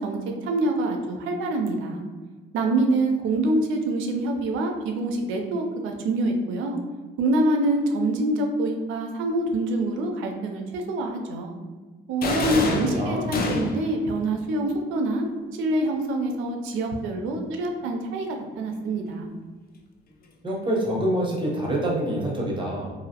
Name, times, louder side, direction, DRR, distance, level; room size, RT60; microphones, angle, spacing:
voice 1, 0.0-2.0 2.5-6.8 7.2-11.6 12.1-15.3 15.5-19.3, right 2 dB, 90° right, 3 dB, 0.4 m, -25 dB
sound 1, 12.2-14.0, left 3 dB, 50° left, 0.4 m, -27 dB
voice 2, 12.7-13.3 20.4-22.9, right 1 dB, 25° right, -3 dB, 0.8 m, -26 dB
2.5 x 2.0 x 2.7 m, 1.4 s
cardioid pair, 90°, 20 cm